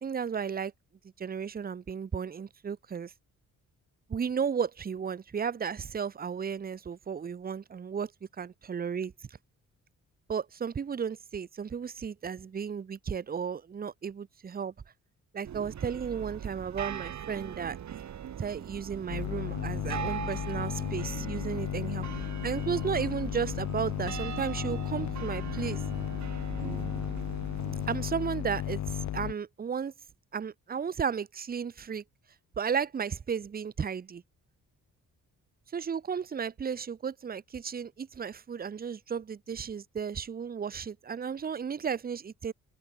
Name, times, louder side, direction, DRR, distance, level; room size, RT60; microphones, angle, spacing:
voice 1, 0.0-0.7 1.2-3.1 4.1-8.1 8.4-9.1 10.3-14.7 15.3-17.8 18.4-22.1 22.4-25.8 27.9-29.9 30.3-32.0 32.6-34.2 35.7-42.5, right 7 dB, 30° right, 0.9 m, -34 dB
sound 1, 15.4-28.0, right 9 dB, 60° right, 4.1 m, -40 dB
sound 2, 19.1-29.3, left 12 dB, 60° left, 0.8 m, -34 dB
open air
wide cardioid pair, 160°, 32 cm